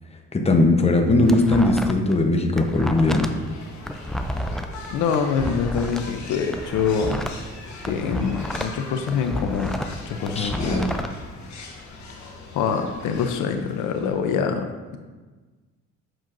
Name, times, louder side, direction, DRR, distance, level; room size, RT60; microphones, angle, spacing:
voice 1, 0.3-3.4 10.3-11.0, left 2 dB, 20° left, 3 dB, 0.9 m, -19 dB
sound 1, 0.9-2.1 2.4-6.0 6.4-8.8 9.1-11.1, left 1 dB, ahead, 0.4 m, -30 dB
sound 2, 2.8-14.4, left 3 dB, 70° left, 1.3 m, -41 dB
voice 2, 4.9-7.2 7.9-9.8 10.1-10.9 12.5-15.0, left 6 dB, 90° left, 6 dB, 0.6 m, -25 dB
7.6 x 6.1 x 2.6 m, 1.3 s
cardioid pair, 90°, 30 cm